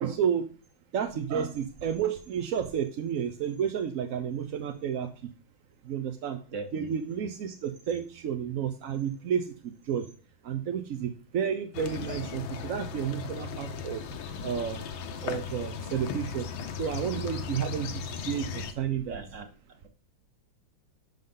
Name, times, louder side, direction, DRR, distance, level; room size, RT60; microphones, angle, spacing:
voice 1, 0.0-0.5 0.9-5.3 5.8-6.4 6.7-10.1 10.4-14.0 14.4-14.9 15.2-16.5 16.8-19.2, right 8 dB, 60° right, 7 dB, 0.9 m, -31 dB
voice 2, 6.5-7.2 19.1-19.5, right 3 dB, 45° right, 7 dB, 1.5 m, -39 dB
sound 1, 11.7-18.7, left 6 dB, 80° left, 1.7 m, -37 dB
10.5 x 5.4 x 3.9 m, 0.37 s
omnidirectional pair, 2.1 m